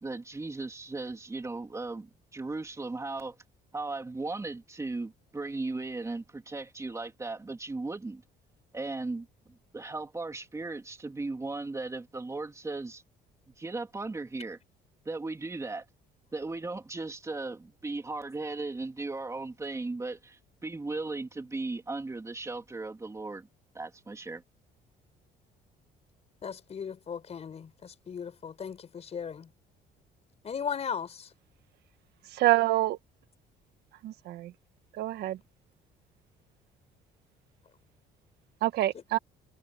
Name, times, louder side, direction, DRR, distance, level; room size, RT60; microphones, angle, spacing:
voice 1, 0.0-3.3 3.7-8.2 8.7-13.0 13.5-14.6 15.0-15.8 16.3-23.5 23.7-24.4, right 3 dB, 15° right, 3.3 m, -37 dB
voice 2, 26.4-29.5 30.4-31.3, left 7 dB, 40° left, 4.6 m, -37 dB
voice 3, 32.3-33.0 34.0-34.5 34.9-35.4 38.6-39.2, right 16 dB, 75° right, 1.5 m, -26 dB
cardioid pair, 110°, 17 cm